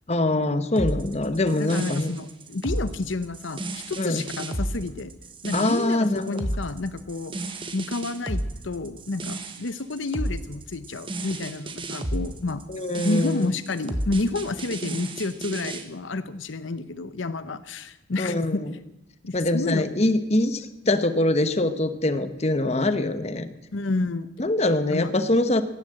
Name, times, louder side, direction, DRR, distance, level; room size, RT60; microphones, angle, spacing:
voice 1, 0.1-2.2 4.0-4.2 5.5-6.4 12.7-13.5 18.2-18.7 19.3-23.5 24.4-25.6, left 2 dB, 35° left, 11 dB, 0.9 m, -24 dB
sound 1, 0.8-15.8, right 1 dB, 25° right, 1.3 m, -32 dB
voice 2, 1.6-5.1 5.4-7.3 7.7-12.7 13.0-18.8 19.2-19.9 23.7-24.3 24.9-25.1, left 3 dB, 75° left, 13 dB, 0.8 m, -30 dB
16.5 x 11.0 x 7.7 m, 0.93 s
head